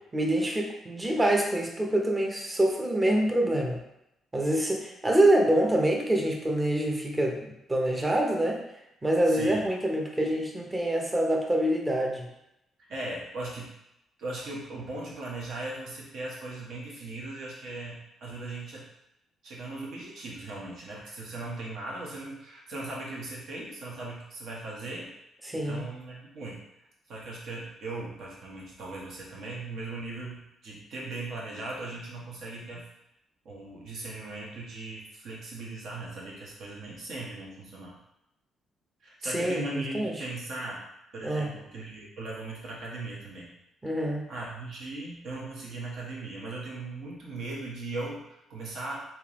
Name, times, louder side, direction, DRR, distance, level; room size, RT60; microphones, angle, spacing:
voice 1, 0.1-3.8 4.3-8.6 9.0-12.3 25.4-25.8 39.2-40.2 41.2-41.5 43.8-44.2, right 1 dB, 20° right, 1 dB, 0.7 m, -26 dB
voice 2, 9.3-9.6 12.9-13.7 14.2-18.8 19.4-25.1 25.5-26.6 27.1-32.8 33.4-38.0 39.0-40.8 41.1-43.5 43.9-48.2 48.5-49.0, right 2 dB, 70° right, -4 dB, 1.1 m, -38 dB
3.5 x 2.9 x 3.0 m, 0.84 s
cardioid pair, 90°, 0 cm